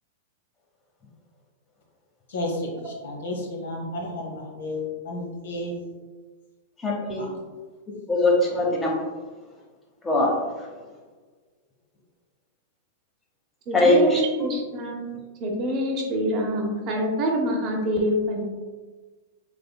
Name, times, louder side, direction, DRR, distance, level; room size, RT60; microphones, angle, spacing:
voice 1, 2.3-2.7 3.0-5.7 7.2-7.3, left 1 dB, 75° left, 1 dB, 0.8 m, -32 dB
voice 2, 6.8-7.3 8.1-9.0 10.0-10.3 13.7-14.5, left 1 dB, 15° left, -2 dB, 0.8 m, -21 dB
voice 3, 13.7-15.1 15.4-18.5, equal, 40° right, 1 dB, 0.7 m, -26 dB
3.4 x 3.3 x 2.2 m, 1.3 s
hypercardioid pair, 115°, 0 cm